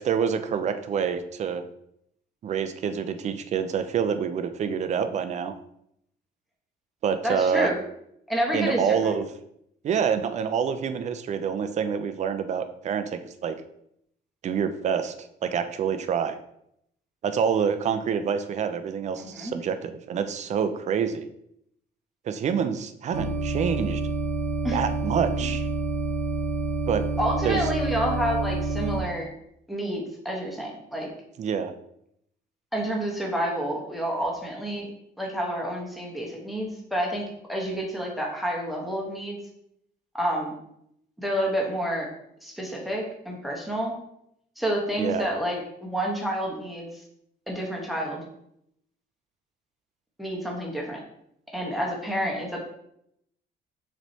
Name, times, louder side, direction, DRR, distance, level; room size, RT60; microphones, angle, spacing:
voice 1, 0.0-1.6 2.4-5.5 7.0-7.7 8.5-9.3 9.8-13.6 14.4-15.1 15.4-16.4 17.2-21.3 22.3-24.0 24.7-25.7 26.9-27.0 27.4-27.6 31.4-31.7 45.0-45.3, right 7 dB, 40° right, 9 dB, 0.4 m, -27 dB
voice 2, 7.2-7.8 8.3-9.1 19.2-19.5 24.6-24.8 25.4-25.5 27.2-29.3 29.7-31.1 32.7-34.9 35.2-39.4 40.1-40.5 41.2-42.1 42.4-43.9 44.6-46.9 47.5-48.2 50.2-51.0 51.5-52.6, equal, ahead, -2 dB, 1.1 m, -29 dB
sound 1, 23.1-29.0, right 2 dB, 85° right, 0.9 m, -28 dB
6.0 x 3.2 x 2.8 m, 0.74 s
cardioid pair, 125°, 18 cm